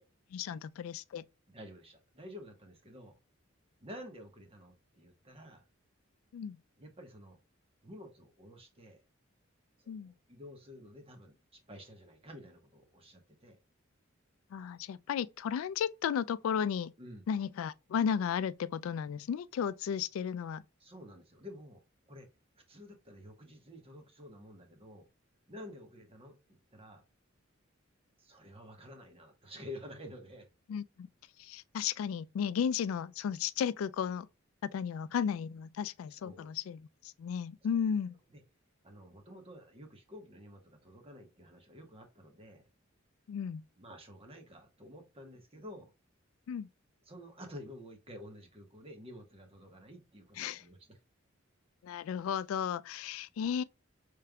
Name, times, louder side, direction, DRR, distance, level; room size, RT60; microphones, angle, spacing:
voice 1, 0.3-1.2 6.3-6.6 9.9-10.1 14.5-16.9 17.3-20.6 30.7-31.1 31.4-34.3 34.6-38.1 43.3-43.6 46.5-46.7 50.4-50.6 51.8-53.6, left 7 dB, 90° left, 0.3 m, -34 dB
voice 2, 1.5-3.2 3.8-5.6 6.8-7.4 7.8-9.0 9.8-13.6 17.0-17.2 20.8-22.3 22.7-25.1 25.5-27.0 28.2-30.5 36.2-36.5 38.3-38.4 38.8-42.6 43.8-45.9 47.0-51.0, left 1 dB, 30° right, 1.1 m, -50 dB
5.1 x 3.3 x 2.2 m
head